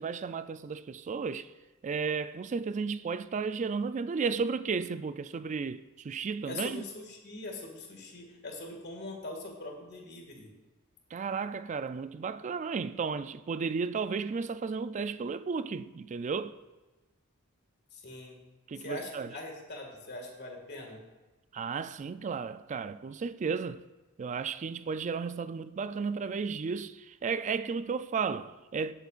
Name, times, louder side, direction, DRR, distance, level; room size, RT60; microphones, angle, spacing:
voice 1, 0.0-1.5 1.8-6.8 11.1-16.6 18.7-19.3 21.5-23.8 24.2-28.9, right 5 dB, 35° right, 0.3 m, -33 dB
voice 2, 6.5-10.5 17.9-18.4 18.8-21.0, left 2 dB, 55° left, 2.0 m, -42 dB
18.0 x 8.0 x 2.5 m
head